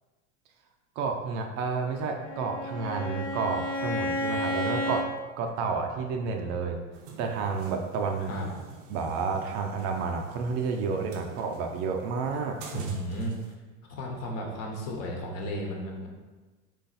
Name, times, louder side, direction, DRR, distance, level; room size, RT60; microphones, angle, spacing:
voice 1, 1.0-5.1 5.4-6.8 7.2-8.3 8.9-12.6, right 5 dB, 45° right, 3 dB, 0.6 m, -30 dB
Bowed string instrument, 1.9-5.1, left 1 dB, 25° left, 0.7 m, -32 dB
sound 1, 6.9-13.5, right 5 dB, 85° right, 0.8 m, -45 dB
voice 2, 12.7-13.3 13.9-16.1, equal, 45° left, 0 dB, 1.1 m, -34 dB
4.0 x 3.0 x 4.1 m, 1.3 s
supercardioid pair, 120°, 36 cm